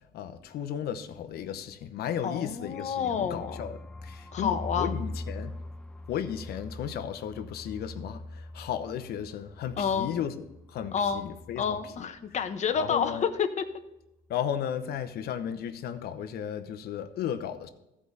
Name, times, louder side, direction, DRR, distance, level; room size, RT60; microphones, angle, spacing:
voice 1, 0.1-3.7 4.0-5.5 6.1-10.3 10.7-11.6 12.8-13.2 14.3-17.7, left 9 dB, 70° left, 0.9 m, -34 dB
voice 2, 2.2-3.6 4.3-5.0 9.8-10.1 10.9-11.3 11.6-13.6, left 7 dB, 45° left, 1.1 m, -29 dB
sound 1, 2.5-12.1 12.3-12.5 12.7-13.2, left 2 dB, 5° left, 0.3 m, -42 dB
14.5 x 5.0 x 4.1 m
cardioid pair, 110°, 17 cm